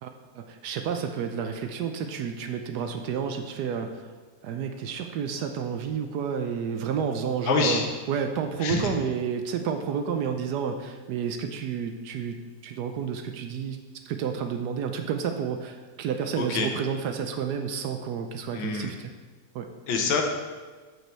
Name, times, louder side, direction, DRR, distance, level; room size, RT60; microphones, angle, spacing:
voice 1, 0.0-4.1 4.4-7.8 8.1-12.4 12.6-13.8 14.0-19.0 19.5-19.7, right 7 dB, 70° right, 6 dB, 1.0 m, -30 dB
voice 2, 7.4-7.9 8.6-8.9 16.4-16.7 18.5-18.9 19.9-20.2, left 5 dB, 80° left, 3 dB, 1.6 m, -26 dB
8.0 x 5.3 x 4.4 m, 1.4 s
omnidirectional pair, 2.1 m